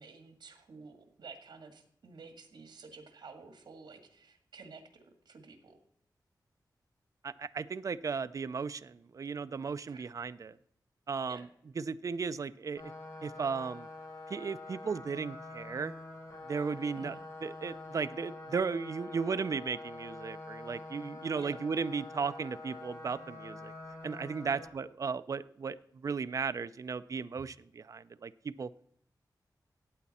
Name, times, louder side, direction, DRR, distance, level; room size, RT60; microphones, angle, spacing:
voice 1, 0.0-5.8 9.9-10.1 11.3-11.5 17.0-17.2 21.4-21.6 24.5-24.6, right 4 dB, 85° right, 7 dB, 1.9 m, -51 dB
voice 2, 7.2-10.6 11.1-11.5 11.8-12.9 13.2-13.9 14.3-15.9 16.4-17.2 17.4-23.7 24.0-25.8 26.0-28.7, right 5 dB, 50° right, 14 dB, 0.4 m, -35 dB
sound 1, 12.8-24.7, left 2 dB, 50° left, 3.9 m, -46 dB
14.5 x 8.9 x 4.2 m, 0.70 s
wide cardioid pair, 120°, 7 cm